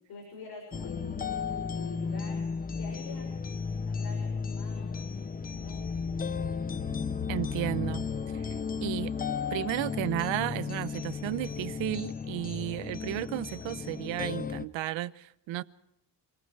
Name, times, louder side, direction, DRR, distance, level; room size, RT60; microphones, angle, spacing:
voice 1, 0.1-1.3 1.7-3.3 3.9-5.0 5.6-6.1, left 4 dB, 55° left, 6.5 m, -46 dB
sound 1, 0.7-14.7, left 5 dB, 20° left, 0.7 m, -34 dB
voice 2, 7.3-8.1 8.3-8.5 8.8-9.1 9.5-15.6, right 15 dB, 85° right, 1.0 m, -33 dB
27.5 x 20.0 x 4.8 m
cardioid pair, 155°, 44 cm